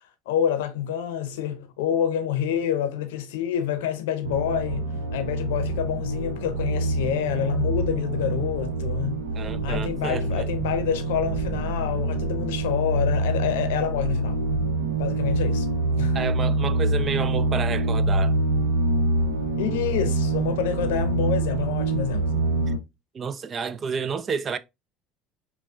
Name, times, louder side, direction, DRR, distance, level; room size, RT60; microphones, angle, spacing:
voice 1, 0.3-9.3 9.6-14.4 15.0-15.7 16.0-16.2 19.6-22.5, left 9 dB, 80° left, 0.6 m, -27 dB
sound 1, 4.2-22.8, right 2 dB, 85° right, 0.7 m, -25 dB
voice 2, 9.4-10.4 16.1-18.4 23.1-24.6, right 5 dB, 35° right, 0.4 m, -30 dB
5.4 x 2.2 x 2.3 m
hypercardioid pair, 75°, 0 cm